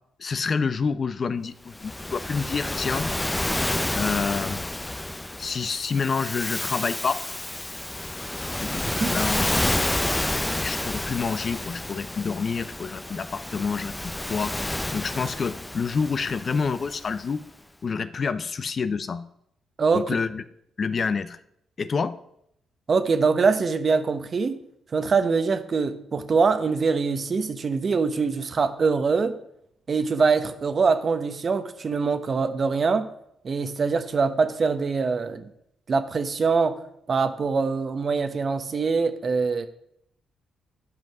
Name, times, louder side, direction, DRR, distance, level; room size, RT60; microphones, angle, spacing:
voice 1, 0.2-3.1 3.9-4.7 5.4-7.2 8.6-9.7 10.5-14.5 14.9-17.4 17.8-19.2 19.9-20.4 20.8-21.4 21.8-22.2, left 5 dB, 50° left, 14 dB, 0.6 m, -28 dB
Waves surf, 1.7-17.2, left 1 dB, 15° left, 0.8 m, -30 dB
voice 2, 19.8-20.2 22.9-24.6 24.9-29.4 29.9-33.1 33.4-35.5 35.9-36.8 37.1-39.7, right 4 dB, 50° right, 9 dB, 1.0 m, -23 dB
11.0 x 5.4 x 6.1 m, 0.75 s
hypercardioid pair, 50°, 0 cm